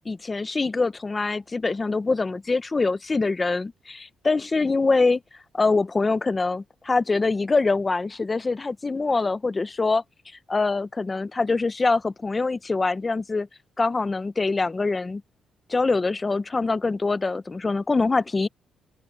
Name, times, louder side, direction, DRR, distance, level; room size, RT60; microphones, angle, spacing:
voice 1, 0.1-5.2 5.5-10.0 10.5-13.5 13.8-15.2 15.7-18.5, left 3 dB, 20° left, 0.5 m, -24 dB
open air
cardioid pair, 175°, 0 cm